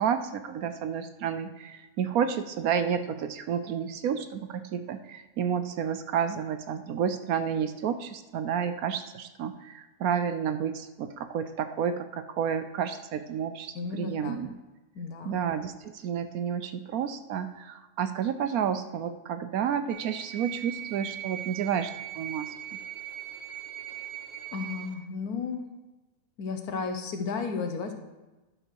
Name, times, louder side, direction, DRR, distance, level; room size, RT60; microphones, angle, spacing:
voice 1, 0.0-14.6 15.2-22.5, right 8 dB, 70° right, 10 dB, 1.0 m, -30 dB
voice 2, 13.7-14.4 14.9-15.4 24.5-25.6 26.4-27.9, left 5 dB, 70° left, 6 dB, 1.4 m, -33 dB
sound 1, 19.9-24.9, right 12 dB, 50° right, 0.7 m, -40 dB
11.0 x 4.9 x 6.4 m, 1.1 s
omnidirectional pair, 1.7 m